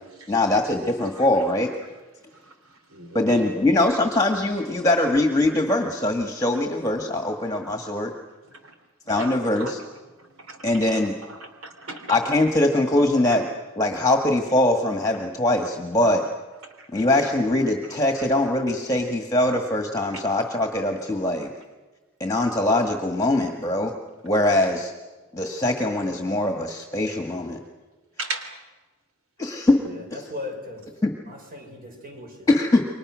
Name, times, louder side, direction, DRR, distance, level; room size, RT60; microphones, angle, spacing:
voice 1, 0.3-1.7 3.1-8.1 9.1-9.8 10.6-11.1 12.1-13.5 13.8-16.3 16.9-21.5 22.2-24.0 24.2-24.9 25.3-27.6 29.4-29.8 31.0-31.1 32.5-32.9, left 1 dB, 15° left, 4 dB, 1.7 m, -22 dB
voice 2, 2.9-3.3 9.0-9.8 10.5-11.0 11.3-12.2 13.3-13.4 16.8-17.0 28.2-28.5, right 3 dB, 75° right, 6 dB, 3.2 m, -37 dB
voice 3, 29.7-30.9 31.2-32.7, left 2 dB, 45° right, 2 dB, 6.0 m, -38 dB
29.5 x 24.0 x 6.3 m, 1.2 s
head